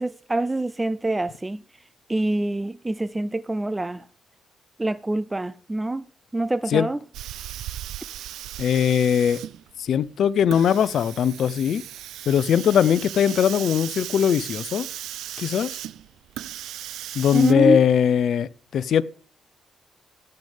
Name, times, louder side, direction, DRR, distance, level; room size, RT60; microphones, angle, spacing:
voice 1, 0.0-1.6 2.1-4.0 4.8-6.0 6.3-7.0 17.3-17.8, right 2 dB, 20° right, 0.6 m, -25 dB
Hiss, 7.1-17.5, right 12 dB, 85° right, 0.5 m, -37 dB
voice 2, 8.6-9.4 9.8-11.8 12.3-14.9 15.4-15.8 17.1-19.0, left 8 dB, 70° left, 0.8 m, -20 dB
17.0 x 8.2 x 3.6 m
cardioid pair, 70°, 0 cm